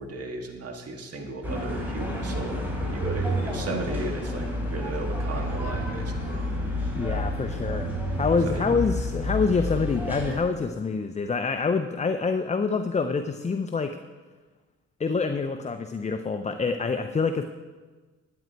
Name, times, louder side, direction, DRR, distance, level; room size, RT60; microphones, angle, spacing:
voice 1, 0.0-6.4 8.4-8.5, right 2 dB, 55° right, 2 dB, 1.9 m, -35 dB
sound 1, 1.4-10.4, equal, 5° right, 3.6 m, -29 dB
voice 2, 6.9-7.9 8.2-14.0 15.0-17.4, left 4 dB, 25° left, 8 dB, 0.6 m, -26 dB
11.0 x 9.1 x 4.6 m, 1.3 s
cardioid pair, 90°, 30 cm